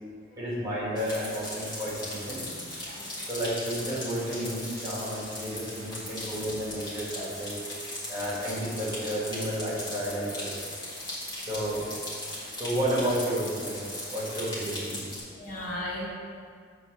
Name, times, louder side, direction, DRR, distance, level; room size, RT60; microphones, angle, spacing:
voice 1, 0.3-2.4 3.3-7.6 8.1-10.7 11.5-11.9 12.6-13.8 14.1-15.1, right 1 dB, 20° right, -7 dB, 2.1 m, -31 dB
sound 1, 1.0-15.2, left 1 dB, 25° left, 1.9 m, -38 dB
voice 2, 15.3-16.1, left 1 dB, 45° left, -6 dB, 1.6 m, -36 dB
7.8 x 3.8 x 6.3 m, 2.1 s
head